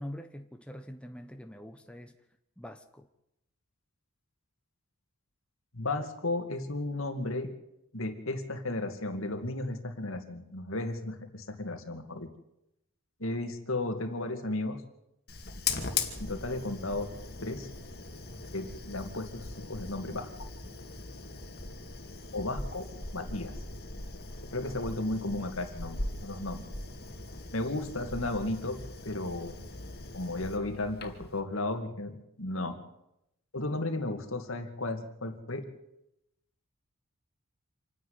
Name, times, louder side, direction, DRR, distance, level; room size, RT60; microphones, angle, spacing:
voice 1, 0.0-2.2 2.6-3.1, equal, 5° left, 6 dB, 0.9 m, -44 dB
voice 2, 5.7-7.5 7.9-12.3 13.2-14.8 16.2-17.1 17.4-17.7 18.5-20.3 22.3-23.6 24.5-26.7 27.5-28.8 29.0-29.6 30.1-32.8 33.5-35.7, left 2 dB, 65° left, 7 dB, 2.3 m, -34 dB
Fire, 15.3-31.4, left 4 dB, 45° left, 2.3 m, -40 dB
27.0 x 10.0 x 9.7 m, 0.85 s
head